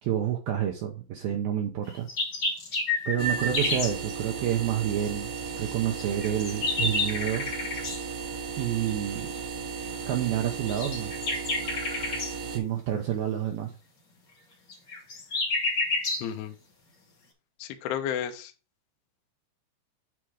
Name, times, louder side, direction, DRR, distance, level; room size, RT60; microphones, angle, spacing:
voice 1, 0.0-2.1 3.1-7.5 8.6-9.3 10.1-11.2 12.5-13.7, right 10 dB, 90° right, 2.1 m, -29 dB
sound 1, 1.9-3.9 6.0-8.0 10.7-12.3 14.7-16.3, left 2 dB, 45° left, 1.4 m, -29 dB
sound 2, 3.2-12.6, right 5 dB, 65° right, 2.5 m, -36 dB
voice 2, 16.2-16.5 17.6-18.5, left 9 dB, 75° left, 2.6 m, -32 dB
9.1 x 3.7 x 4.9 m
omnidirectional pair, 5.5 m